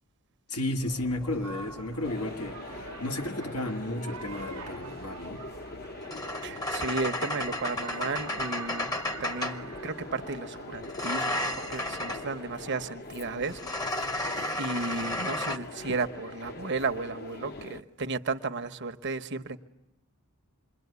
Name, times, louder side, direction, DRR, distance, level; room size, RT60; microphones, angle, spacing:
voice 1, 0.5-5.4, left 1 dB, 80° left, 1.7 m, -33 dB
sound 1, 0.8-2.9 4.2-9.7 10.8-12.3 13.4-15.6, left 1 dB, 15° left, 0.9 m, -34 dB
sound 2, 1.4-13.0, right 5 dB, 75° right, 0.9 m, -47 dB
sound 3, 2.0-17.8, left 2 dB, 45° left, 1.0 m, -42 dB
voice 2, 6.4-13.6 14.6-19.6, right 3 dB, 55° right, 1.0 m, -34 dB
27.5 x 22.5 x 9.6 m
head